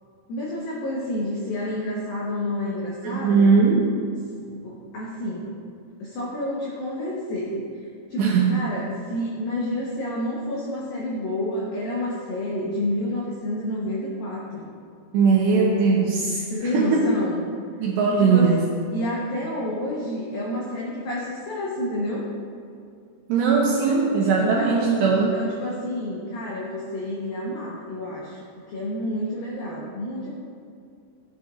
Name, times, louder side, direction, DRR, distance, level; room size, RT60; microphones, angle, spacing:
voice 1, 0.3-3.5 4.6-5.5 6.0-14.7 16.5-17.5 18.2-18.5 18.9-22.3 23.9-24.0 24.4-28.4 28.7-30.3, left 1 dB, 85° left, -5 dB, 2.0 m, -29 dB
voice 2, 3.0-3.9 8.2-8.5 15.1-17.0 17.8-18.7 23.3-25.4, right 5 dB, 80° right, -3 dB, 2.6 m, -20 dB
14.0 x 8.5 x 2.5 m, 2.4 s
omnidirectional pair, 5.9 m